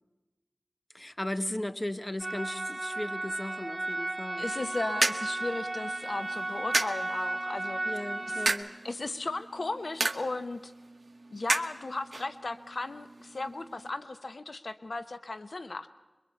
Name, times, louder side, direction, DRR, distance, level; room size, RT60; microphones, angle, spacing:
voice 1, 0.9-4.5 7.8-8.7, left 1 dB, 30° left, 12 dB, 1.3 m, -36 dB
sound 1, 2.2-8.5, right 2 dB, 45° right, 1.4 m, -34 dB
voice 2, 4.4-7.9 8.3-8.4 8.8-10.7 11.3-15.9, left 2 dB, 85° left, 12 dB, 0.9 m, -36 dB
sound 2, 4.5-13.9, right 2 dB, 65° right, 1.1 m, -35 dB
23.0 x 23.0 x 8.3 m, 1.2 s
wide cardioid pair, 45°, 0 cm